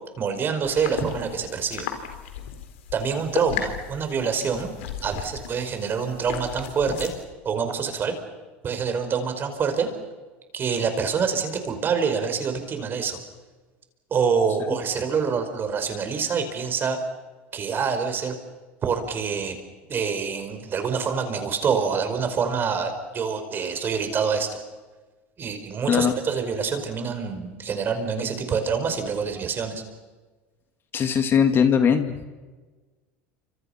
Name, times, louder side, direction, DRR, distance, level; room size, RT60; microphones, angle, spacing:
voice 1, 0.2-1.9 2.9-4.7 5.0-7.1 7.4-8.2 8.6-9.9 10.5-13.2 14.1-17.0 17.5-18.3 18.8-19.6 19.9-24.6 25.4-29.8, right 6 dB, 35° right, 7 dB, 5.2 m, -26 dB
sound 1, 0.6-7.2, left 9 dB, 80° left, 4.0 m, -36 dB
voice 2, 30.9-32.2, left 7 dB, 35° left, 8 dB, 2.1 m, -20 dB
29.0 x 26.0 x 5.9 m, 1.3 s
supercardioid pair, 110°, 6 cm